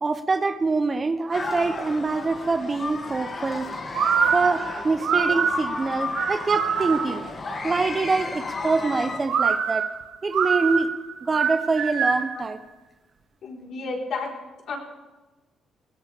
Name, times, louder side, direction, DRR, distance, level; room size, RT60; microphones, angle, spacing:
voice 1, 0.0-3.7 4.3-7.2 7.6-9.9 10.2-10.9 11.2-12.6, right 3 dB, 30° right, 11 dB, 0.8 m, -25 dB
sound 1, 1.3-9.2, left 3 dB, 40° left, 2.4 m, -33 dB
sound 2, 3.9-7.3 9.3-12.4, right 6 dB, 65° right, 1.6 m, -24 dB
voice 2, 13.4-14.3 14.7-14.8, left 4 dB, 65° left, -1 dB, 4.2 m, -32 dB
21.0 x 16.5 x 3.5 m, 1.1 s
cardioid pair, 90°, 0 cm